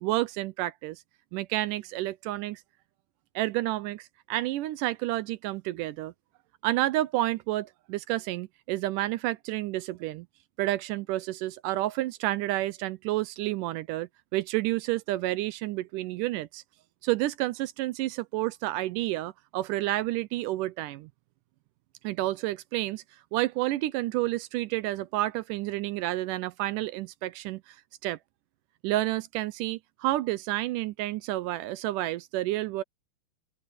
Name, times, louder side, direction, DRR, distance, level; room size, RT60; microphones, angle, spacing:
voice 1, 0.0-1.0 1.3-2.6 3.4-6.1 6.6-10.3 10.6-16.6 17.0-21.1 22.0-23.0 23.3-27.8 28.0-28.2 28.8-32.8, right 16 dB, 80° right, 2.1 m, -30 dB
open air
omnidirectional pair, 4.0 m